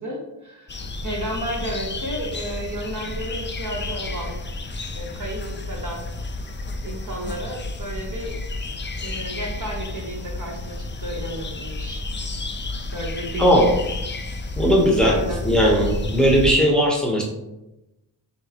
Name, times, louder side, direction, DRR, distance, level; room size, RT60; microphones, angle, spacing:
voice 1, 0.0-4.4 4.9-6.1 6.8-8.4 9.0-12.0 12.9-13.6 15.0-15.5, right 1 dB, 40° right, -1 dB, 1.1 m, -32 dB
sound 1, 0.7-16.5, left 2 dB, 25° left, 0.5 m, -31 dB
voice 2, 13.4-13.7 14.6-15.2 15.4-17.2, equal, ahead, -2 dB, 1.0 m, -17 dB
6.1 x 2.1 x 2.9 m, 0.94 s
cardioid pair, 50°, 47 cm